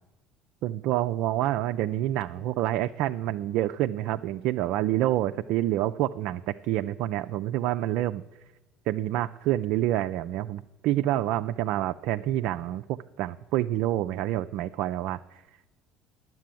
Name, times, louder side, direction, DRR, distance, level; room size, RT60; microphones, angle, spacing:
voice 1, 0.6-8.2 8.9-15.4, right 13 dB, 65° right, 9 dB, 0.3 m, -27 dB
10.5 x 7.6 x 7.6 m, 1.1 s
hypercardioid pair, 70°, 0 cm